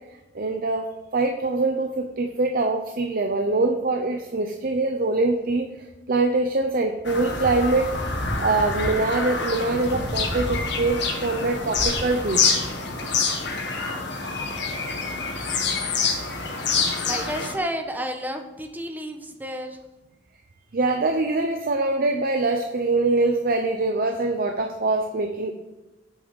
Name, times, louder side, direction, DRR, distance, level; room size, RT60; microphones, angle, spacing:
voice 1, 0.3-0.9 1.1-5.7 6.1-8.0 8.4-12.4 20.7-25.5, right 3 dB, 50° right, 4 dB, 0.7 m, -23 dB
Bird vocalization bird call bird song, 7.0-17.5, left 4 dB, 65° left, 1.7 m, -26 dB
voice 2, 17.0-19.8, equal, 10° right, 4 dB, 1.2 m, -31 dB
8.9 x 6.1 x 7.8 m, 1.1 s
head